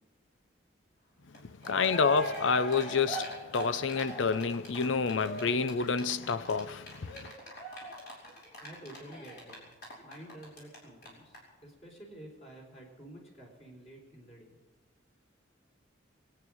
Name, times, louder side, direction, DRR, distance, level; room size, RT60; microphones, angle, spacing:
Cheering, 1.3-1.4 1.6-10.8 11.0-11.1 11.3-11.4, equal, 55° left, 5.3 m, -41 dB
voice 1, 1.7-7.3, left 5 dB, 75° left, 0.6 m, -29 dB
voice 2, 8.6-9.7 10.0-11.4 11.6-14.5, right 1 dB, 35° left, 3.9 m, -50 dB
23.5 x 9.0 x 6.3 m
head